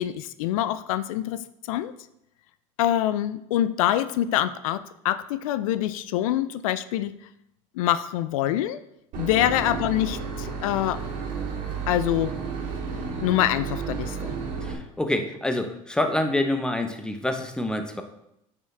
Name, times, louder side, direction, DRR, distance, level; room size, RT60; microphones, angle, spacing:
voice 1, 0.0-1.9 2.8-7.2 7.8-8.8 9.2-11.0 11.9-12.3 13.2-14.4, left 12 dB, 80° left, 13 dB, 0.4 m, -25 dB
Boat Water vehicle / Engine, 9.1-14.7, right 5 dB, 55° right, 2.1 m, -32 dB
voice 2, 14.6-18.0, left 1 dB, 5° left, 6 dB, 0.9 m, -27 dB
8.6 x 5.8 x 3.4 m, 0.81 s
hypercardioid pair, 95°, 17 cm